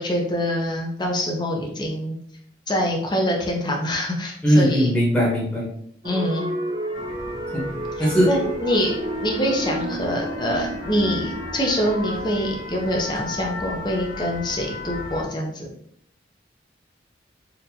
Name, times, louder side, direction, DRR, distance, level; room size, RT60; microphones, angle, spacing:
voice 1, 0.0-2.2 2.7-4.9 6.0-6.5 8.0-15.7, equal, 25° left, 0 dB, 0.7 m, -25 dB
voice 2, 4.4-5.7 7.5-7.6 8.0-8.3, equal, 5° left, -5 dB, 1.1 m, -19 dB
sound 1, 6.0-12.3, right 1 dB, 25° right, 0.5 m, -31 dB
sound 2, 6.9-15.2, left 2 dB, 50° left, 0.9 m, -36 dB
4.2 x 2.6 x 2.8 m, 0.66 s
head